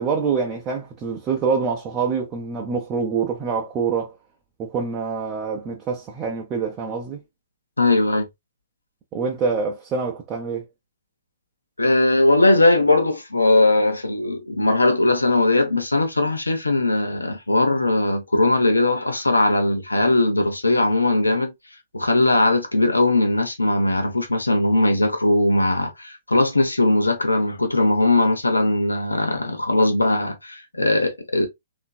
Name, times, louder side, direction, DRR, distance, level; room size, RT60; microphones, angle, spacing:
voice 1, 0.0-4.2 4.6-7.2 9.1-10.6, right 5 dB, 25° right, 0.5 m, -25 dB
voice 2, 7.8-8.3 11.8-21.5 21.9-31.5, left 2 dB, 80° left, 0.7 m, -19 dB
3.0 x 2.5 x 2.3 m
figure-of-eight pair, 120°, 0 cm